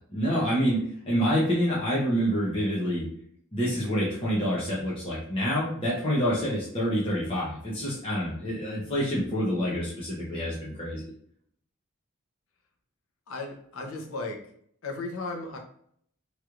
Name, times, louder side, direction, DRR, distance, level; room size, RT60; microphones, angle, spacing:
voice 1, 0.1-0.8 1.0-3.1 3.5-11.0, equal, 25° left, -7 dB, 0.8 m, -27 dB
voice 2, 13.3-14.4 14.8-15.6, left 3 dB, 85° left, 3 dB, 0.7 m, -35 dB
3.2 x 3.0 x 2.4 m, 0.65 s
head